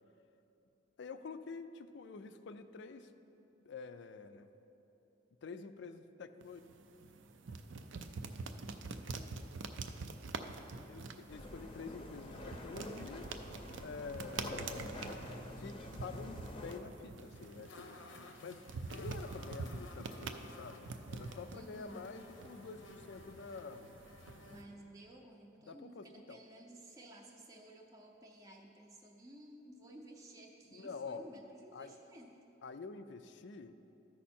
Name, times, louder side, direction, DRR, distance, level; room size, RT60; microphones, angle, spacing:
voice 1, 1.0-3.1 3.7-4.5 5.4-6.6 10.9-13.3 13.8-14.9 15.6-18.6 18.9-23.9 25.7-26.4 30.7-31.2 31.7-31.9 32.6-33.7, left 4 dB, 65° left, 10 dB, 0.4 m, -48 dB
sound 1, 6.4-24.6, right 4 dB, 70° right, 0.5 m, -46 dB
sound 2, 11.3-16.8, left 1 dB, 25° left, 0.7 m, -47 dB
sound 3, 17.3-24.7, left 2 dB, 90° left, 0.8 m, -55 dB
voice 2, 21.5-22.1 24.4-32.4, right 1 dB, 20° right, 0 dB, 0.6 m, -55 dB
14.0 x 5.4 x 4.3 m, 3.0 s
head